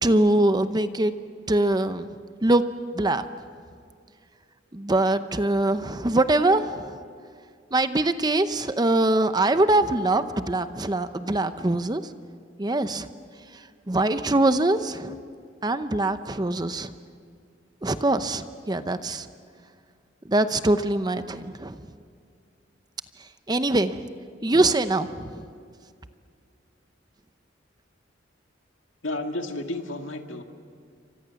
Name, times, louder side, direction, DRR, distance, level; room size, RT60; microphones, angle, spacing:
voice 1, 0.0-1.1 1.5-2.1 2.4-2.6 2.9-3.2 4.7-7.0 7.7-12.0 12.6-13.1 13.9-15.1 15.6-16.9 17.8-19.3 20.3-21.8 23.5-24.1 24.4-25.4, right 2 dB, 20° right, 11 dB, 0.7 m, -23 dB
voice 2, 29.0-30.4, left 2 dB, 85° left, 4 dB, 2.0 m, -31 dB
28.5 x 24.5 x 7.0 m, 2.2 s
head